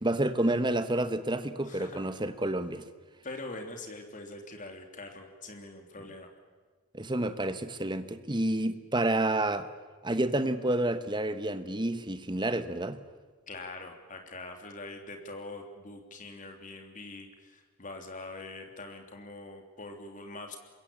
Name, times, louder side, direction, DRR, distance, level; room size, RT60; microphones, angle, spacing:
voice 1, 0.0-2.8 6.9-9.7 10.0-13.0, right 1 dB, 20° right, 11 dB, 1.2 m, -29 dB
voice 2, 1.6-2.0 3.2-6.3 13.5-20.6, left 2 dB, 35° left, 4 dB, 3.3 m, -43 dB
26.0 x 22.0 x 8.8 m, 1.5 s
head